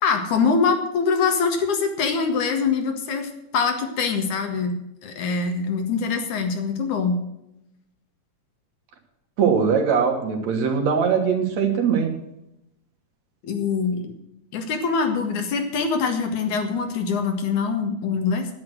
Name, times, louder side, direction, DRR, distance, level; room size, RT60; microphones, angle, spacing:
voice 1, 0.0-4.7 5.0-7.2 13.4-14.1 14.5-18.5, left 5 dB, 80° left, 5 dB, 3.2 m, -24 dB
voice 2, 9.4-12.1, right 6 dB, 65° right, 3 dB, 3.0 m, -21 dB
10.5 x 9.7 x 7.9 m, 0.85 s
omnidirectional pair, 3.4 m